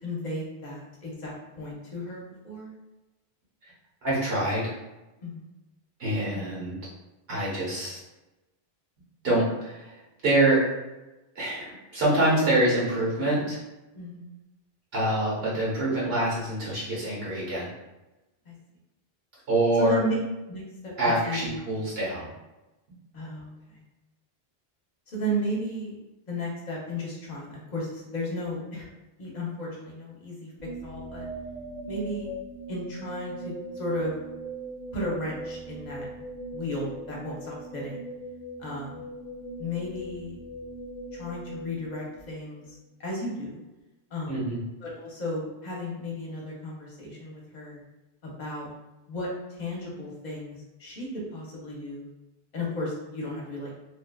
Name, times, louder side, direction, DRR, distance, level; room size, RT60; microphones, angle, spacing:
voice 1, 0.0-2.7 5.2-5.4 13.9-14.3 18.5-18.6 19.8-20.1 20.5-21.6 23.1-23.8 25.1-25.9 26.3-28.9 29.2-30.5 30.8-31.3 31.9-32.3 32.7-34.1 34.9-36.1 36.5-38.0 38.6-39.1 39.6-40.4 41.1-43.6 44.1-44.4 44.8-47.8 48.2-48.7 49.1-49.3 49.6-51.1 51.3-52.1 52.5-53.7, equal, 50° left, -3 dB, 0.8 m, -34 dB
voice 2, 4.0-4.7 6.0-6.8 7.3-8.0 9.2-10.6 11.3-13.6 14.9-17.7 19.5-20.0 21.0-22.3 44.3-44.6, right 1 dB, 70° right, -6 dB, 1.3 m, -25 dB
sound 1, 30.6-42.6, right 1 dB, 45° right, 0.8 m, -40 dB
2.7 x 2.3 x 2.2 m, 1.0 s
omnidirectional pair, 1.0 m